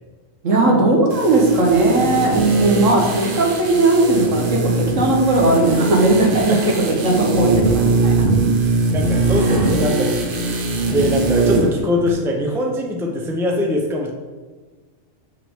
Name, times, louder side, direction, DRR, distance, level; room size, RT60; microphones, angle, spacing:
voice 1, 0.4-6.7 7.0-8.2 9.4-9.6, right 2 dB, 75° right, 0 dB, 1.6 m, -17 dB
sound 1, 1.1-11.8 12.0-12.1, right 2 dB, 50° right, 0.8 m, -21 dB
voice 2, 8.6-10.2 10.7-14.1, left 1 dB, 5° right, 1 dB, 0.6 m, -22 dB
7.0 x 5.6 x 3.7 m, 1.3 s
omnidirectional pair, 1.4 m